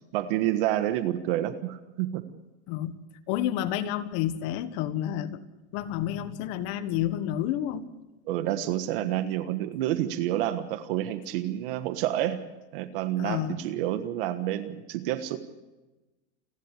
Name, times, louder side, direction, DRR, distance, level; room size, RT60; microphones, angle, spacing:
voice 1, 0.1-2.2 8.3-12.4 12.7-15.4, right 13 dB, 55° right, 10 dB, 1.4 m, -29 dB
voice 2, 3.3-5.4 5.7-7.9 13.2-13.6, left 11 dB, 45° left, 11 dB, 1.5 m, -30 dB
29.0 x 11.5 x 8.4 m, 1.1 s
supercardioid pair, 150°, 34 cm